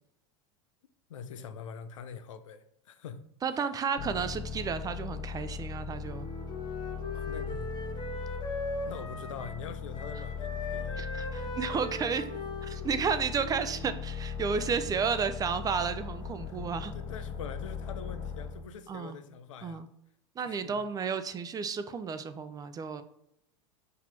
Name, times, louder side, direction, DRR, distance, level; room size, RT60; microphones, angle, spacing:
voice 1, 1.1-3.2 3.5-3.7 7.1-7.7 8.8-11.0 15.0-15.1 16.5-16.6 16.9-19.8 20.4-20.9, left 6 dB, 85° left, 0.6 m, -44 dB
voice 2, 3.4-6.3 11.0-12.3 12.6-16.9 18.9-19.2 19.6-19.9 20.4-23.0, right 6 dB, 25° right, 0.4 m, -32 dB
sound 1, 4.0-18.7, left 6 dB, 50° left, 1.1 m, -39 dB
Wind instrument woodwind instrument, 6.0-9.7 9.9-13.9, left 2 dB, 30° left, 1.0 m, -40 dB
4.1 x 2.9 x 4.5 m
hypercardioid pair, 105°, 16 cm